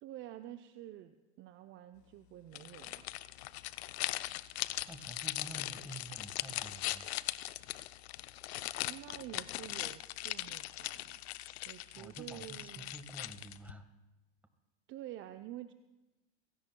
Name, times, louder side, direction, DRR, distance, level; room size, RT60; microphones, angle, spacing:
voice 1, 0.0-3.2 8.9-11.2 11.6-12.9 14.9-15.7, right 13 dB, 35° right, 9 dB, 0.6 m, -48 dB
sound 1, 2.5-13.7, left 17 dB, 65° left, 0.6 m, -40 dB
voice 2, 4.9-7.1 11.9-13.9, right 2 dB, 5° right, 7 dB, 1.5 m, -49 dB
28.0 x 16.5 x 2.3 m, 1.1 s
hypercardioid pair, 100°, 34 cm